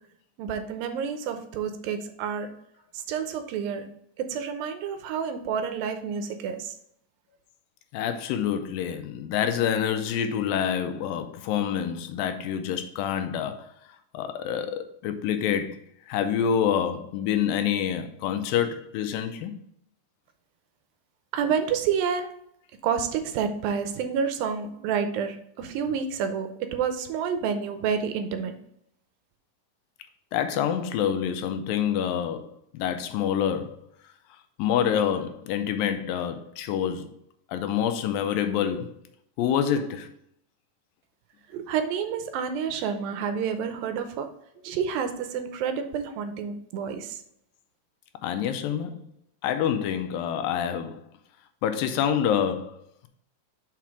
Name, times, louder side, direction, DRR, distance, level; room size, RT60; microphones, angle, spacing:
voice 1, 0.4-2.5 3.1-3.9 4.2-6.8 21.3-22.3 22.8-28.6 41.5-44.3 44.6-47.2, right 7 dB, 85° right, 2.4 m, -29 dB
voice 2, 7.9-13.7 14.1-15.8 16.1-19.5 30.3-33.8 34.6-37.2 37.5-39.0 39.4-40.1 48.2-49.1 49.4-51.0 51.6-53.1, left 9 dB, 80° left, 2.3 m, -27 dB
5.8 x 5.0 x 4.7 m
omnidirectional pair, 4.2 m